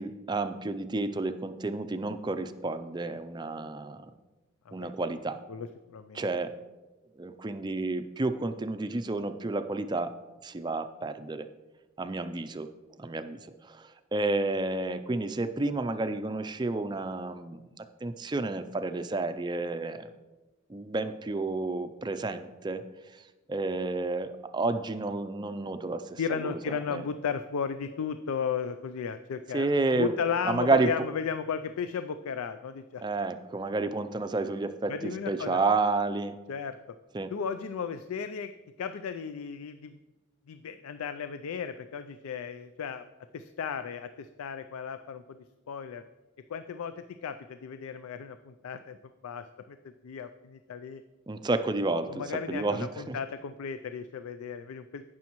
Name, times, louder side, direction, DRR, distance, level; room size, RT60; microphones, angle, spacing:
voice 1, 0.0-4.1 4.7-5.4 6.1-6.5 7.2-10.1 10.4-11.5 12.0-12.7 13.0-20.1 20.7-22.8 23.5-27.0 29.5-30.1 30.4-30.9 33.0-34.9 35.3-36.4 37.1-37.3 51.3-53.2, right 3 dB, 20° right, 10 dB, 0.4 m, -30 dB
voice 2, 5.5-6.2 26.2-33.0 34.9-35.6 36.5-36.8 37.3-38.5 38.8-40.0 40.5-43.0 43.3-45.4 45.7-46.0 46.5-49.0 49.2-49.8 50.0-51.0 52.1-55.0, left 6 dB, 90° left, 10 dB, 0.4 m, -35 dB
16.5 x 6.2 x 3.0 m, 1.2 s
head